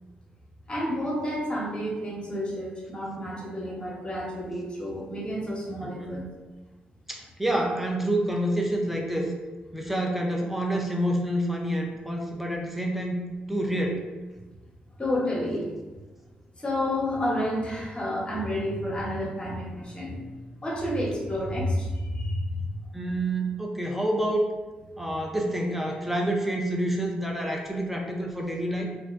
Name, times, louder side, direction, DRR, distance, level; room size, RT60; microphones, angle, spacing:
voice 1, 0.7-6.2 15.0-15.7 16.6-20.1 20.6-22.6, left 1 dB, 30° left, -4 dB, 0.9 m, -30 dB
voice 2, 5.8-6.2 7.1-9.3 9.7-13.2 13.5-14.0 22.9-24.4 25.0-28.8, right 1 dB, 5° right, 0 dB, 0.5 m, -28 dB
2.4 x 2.1 x 2.4 m, 1.2 s
cardioid pair, 65°, 3 cm